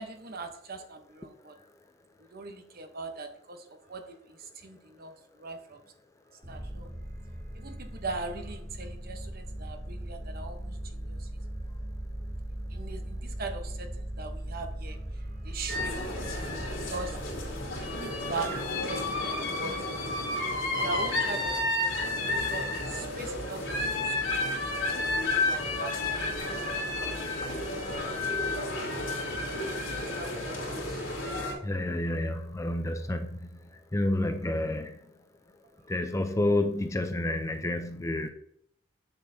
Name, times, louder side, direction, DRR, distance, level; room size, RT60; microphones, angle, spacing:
voice 1, 0.0-1.6 2.3-5.8 6.5-6.9 7.5-11.3 12.7-16.0 16.9-17.2 17.8-19.8 20.1-20.4 20.7-22.1 22.4-24.6 24.9-25.0 25.3-27.5 28.8-29.1 29.6-31.0, right 3 dB, 45° right, 6 dB, 0.8 m, -41 dB
sound 1, 6.4-19.3, right 1 dB, 25° right, 2.8 m, -39 dB
sound 2, 15.7-31.5, left 2 dB, 70° left, 2.8 m, -31 dB
voice 2, 31.6-35.1 35.8-38.3, left 1 dB, 15° left, 7 dB, 0.4 m, -30 dB
7.2 x 6.8 x 2.7 m, 0.70 s
head